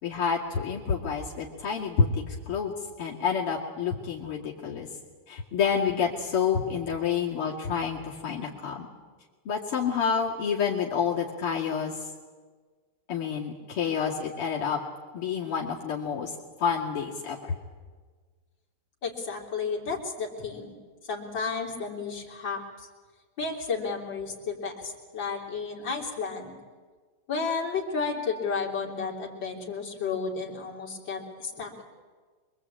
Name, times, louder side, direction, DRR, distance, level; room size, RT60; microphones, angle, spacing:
voice 1, 0.0-2.1 2.5-4.9 5.3-8.9 9.4-12.1 13.1-14.8 15.1-17.5, left 6 dB, 80° left, -4 dB, 3.3 m, -28 dB
voice 2, 19.0-20.7 21.0-22.9 23.4-26.6 27.3-31.8, left 5 dB, 55° left, -2 dB, 4.1 m, -32 dB
26.0 x 23.0 x 8.6 m, 1.5 s
omnidirectional pair, 2.4 m